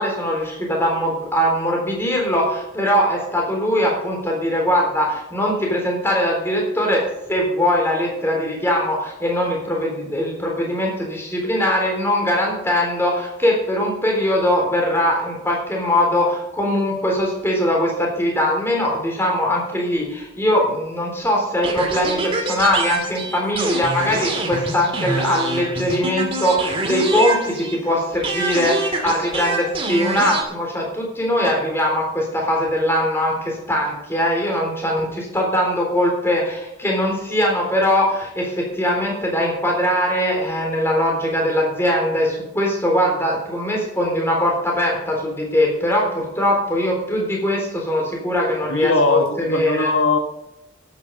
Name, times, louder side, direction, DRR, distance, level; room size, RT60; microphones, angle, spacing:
voice 1, 0.0-49.9, equal, 10° left, -1 dB, 3.6 m, -21 dB
sound 1, 21.6-27.9 28.2-30.4, right 2 dB, 25° right, 2.1 m, -25 dB
voice 2, 48.7-50.2, left 3 dB, 80° left, 5 dB, 1.5 m, -19 dB
12.0 x 9.3 x 5.3 m, 0.89 s
head